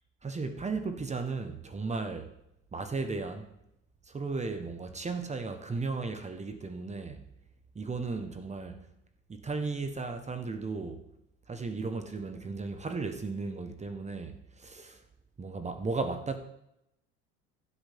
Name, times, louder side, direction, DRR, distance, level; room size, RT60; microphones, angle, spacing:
voice 1, 0.2-2.3 2.7-3.5 4.1-7.2 7.7-8.8 9.3-11.0 11.5-15.0 15.4-16.4, right 4 dB, 20° right, 1.2 m, -35 dB
15.0 x 8.4 x 3.6 m
supercardioid pair, 95°, 30 cm